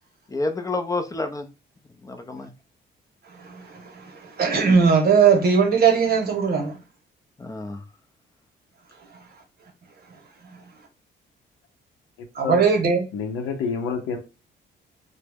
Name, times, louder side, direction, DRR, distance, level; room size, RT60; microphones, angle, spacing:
voice 1, 0.3-1.5 2.0-2.5 7.4-7.8, left 2 dB, 15° left, 0.4 m, -29 dB
voice 2, 3.4-6.8 12.3-13.1, right 6 dB, 50° right, 0.9 m, -19 dB
voice 3, 13.1-14.2, left 5 dB, 90° left, 0.7 m, -28 dB
2.2 x 2.0 x 3.3 m
cardioid pair, 90°, 20 cm